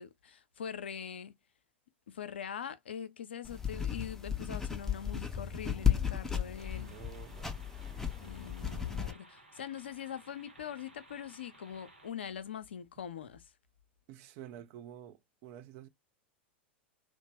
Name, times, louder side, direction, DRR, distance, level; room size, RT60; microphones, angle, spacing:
voice 1, 0.0-1.3 2.1-6.9 8.2-13.5, left 8 dB, 70° left, 0.5 m, -43 dB
sound 1, 3.4-9.1, left 8 dB, 5° left, 0.5 m, -34 dB
sound 2, 6.6-12.1, right 2 dB, 85° right, 1.0 m, -58 dB
voice 2, 6.7-7.7 14.1-15.9, right 11 dB, 45° right, 0.5 m, -50 dB
2.8 x 2.0 x 2.9 m
figure-of-eight pair, 90°, 6 cm